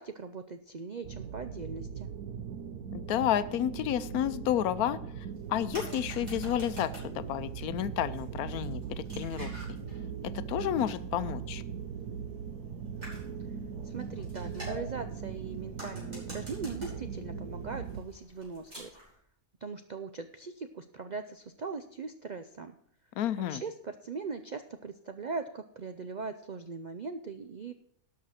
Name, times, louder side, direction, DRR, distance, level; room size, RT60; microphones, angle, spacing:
voice 1, 0.0-2.1 13.8-19.0 19.6-22.7 23.4-27.7, right 4 dB, 70° right, 8 dB, 0.4 m, -40 dB
sound 1, 1.0-18.0, right 7 dB, 85° right, 1.4 m, -40 dB
voice 2, 2.9-5.0 5.5-9.5 10.2-11.6 23.2-23.6, left 11 dB, 85° left, 15 dB, 1.1 m, -31 dB
sound 2, 5.3-19.1, equal, 30° right, 4.8 m, -49 dB
12.0 x 5.9 x 6.3 m, 0.68 s
omnidirectional pair, 1.5 m